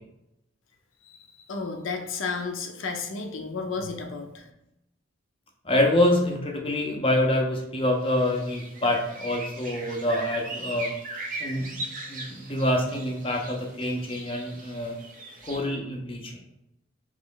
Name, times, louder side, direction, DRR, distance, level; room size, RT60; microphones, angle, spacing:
voice 1, 1.0-4.5, left 4 dB, 75° left, 3 dB, 0.6 m, -33 dB
voice 2, 5.6-10.9 11.4-15.0 15.4-16.4, left 1 dB, 25° left, 2 dB, 0.6 m, -26 dB
sound 1, 8.0-15.6, right 2 dB, 40° right, 0.6 m, -39 dB
3.2 x 3.1 x 3.8 m, 0.86 s
head